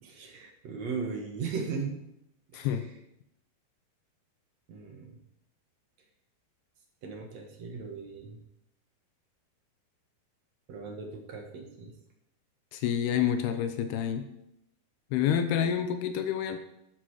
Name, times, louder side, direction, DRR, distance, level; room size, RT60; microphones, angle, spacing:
voice 1, 0.0-2.0 2.5-2.7 4.7-5.2 7.0-8.4 10.7-11.9, right 5 dB, 55° right, 2 dB, 2.3 m, -37 dB
voice 2, 2.5-2.8 12.7-14.3 15.1-16.6, left 9 dB, 85° left, 8 dB, 2.8 m, -28 dB
12.0 x 9.6 x 4.8 m, 0.82 s
omnidirectional pair, 4.5 m